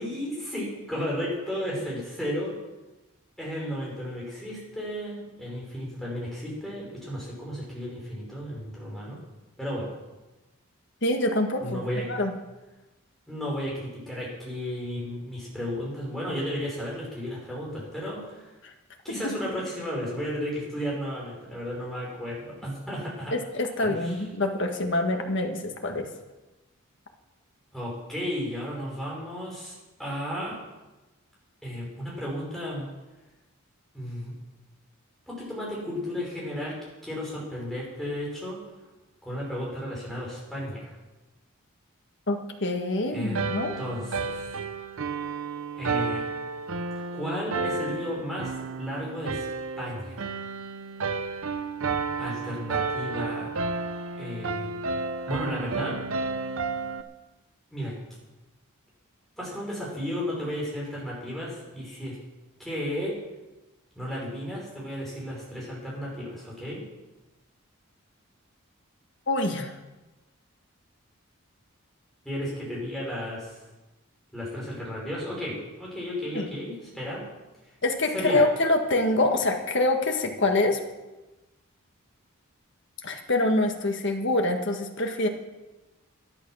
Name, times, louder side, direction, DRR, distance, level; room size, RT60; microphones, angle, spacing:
voice 1, 0.0-2.5 3.4-9.2 9.6-9.9 11.6-12.1 13.3-18.5 19.0-23.3 23.8-24.2 27.7-29.7 30.0-30.6 31.6-32.9 33.9-34.3 35.3-36.8 37.0-38.6 39.2-40.9 43.1-44.6 45.7-46.3 47.1-49.5 49.8-50.3 52.2-53.5 54.2-54.7 55.3-56.0 57.7-58.0 59.4-62.2 62.6-63.1 64.0-66.8 72.2-73.6 74.3-77.2 78.1-78.4, equal, ahead, -5 dB, 5.7 m, -33 dB
voice 2, 11.0-11.8 12.1-12.3 23.3-26.1 42.3-43.7 69.3-69.7 76.3-76.5 77.8-80.8 83.0-85.3, left 2 dB, 55° left, 3 dB, 1.7 m, -25 dB
sound 1, 43.4-57.0, right 4 dB, 70° right, 0.8 m, -32 dB
12.5 x 11.5 x 6.4 m, 1.1 s
head